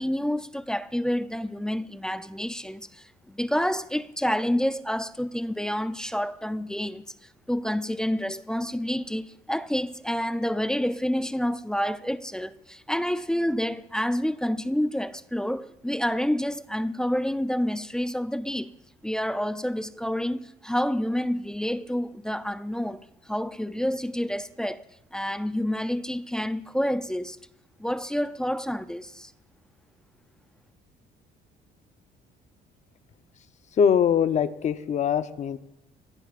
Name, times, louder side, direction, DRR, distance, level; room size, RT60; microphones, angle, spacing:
voice 1, 0.0-18.7 19.0-24.8 25.1-27.4 27.8-29.3, equal, 5° left, 0.5 m, -28 dB
voice 2, 33.8-35.6, left 7 dB, 45° left, 0.8 m, -22 dB
27.5 x 16.5 x 2.5 m
cardioid pair, 110°, 17 cm